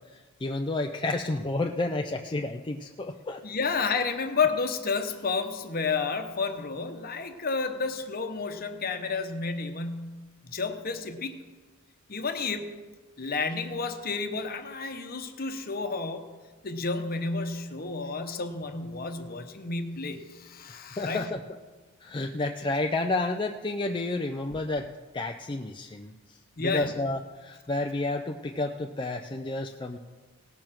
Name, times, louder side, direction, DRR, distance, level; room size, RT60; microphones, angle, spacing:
voice 1, 0.4-3.4 21.0-21.4 22.0-24.9 25.1-26.1 26.6-30.0, left 2 dB, 20° left, 4 dB, 0.4 m, -30 dB
voice 2, 3.4-10.2 10.5-11.3 12.1-12.7 13.2-16.3 16.6-21.3 26.6-26.9, left 4 dB, 45° left, 7 dB, 1.0 m, -31 dB
18.0 x 6.7 x 5.9 m, 1.3 s
head